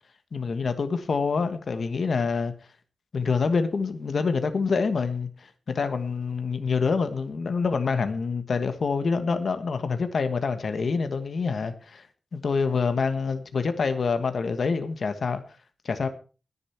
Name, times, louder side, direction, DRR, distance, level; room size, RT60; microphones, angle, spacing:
voice 1, 0.3-2.5 3.1-12.1 12.3-15.4 15.8-16.1, left 5 dB, 65° left, 1.4 m, -26 dB
20.5 x 7.0 x 4.5 m
wide cardioid pair, 135°, 0 cm